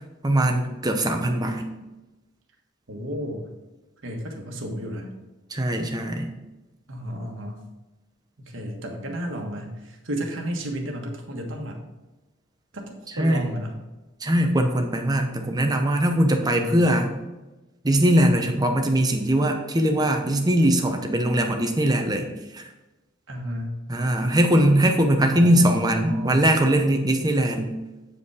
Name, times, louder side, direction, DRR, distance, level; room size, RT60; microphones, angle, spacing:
voice 1, 0.2-1.6 5.5-6.3 13.2-13.4 14.2-17.2 17.8-22.3 22.5-22.6 23.9-27.7, right 1 dB, 20° right, 4 dB, 0.8 m, -21 dB
voice 2, 2.9-3.4 4.0-5.1 6.9-7.6 8.4-11.8 12.7-13.8 16.4-17.0 23.3-23.8 25.3-26.5, equal, 70° right, 2 dB, 1.4 m, -33 dB
8.5 x 5.0 x 4.7 m, 1.1 s
head